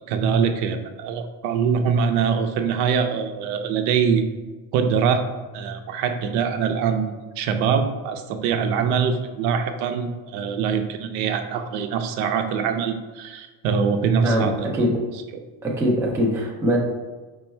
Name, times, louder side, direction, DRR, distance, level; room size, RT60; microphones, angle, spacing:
voice 1, 0.1-4.3 4.7-5.2 5.5-14.8 15.3-15.4, right 6 dB, 80° right, 7 dB, 0.6 m, -23 dB
voice 2, 14.2-15.0 15.6-16.8, equal, 10° right, -2 dB, 0.3 m, -22 dB
5.2 x 2.2 x 4.2 m, 1.3 s
cardioid pair, 160°, 40 cm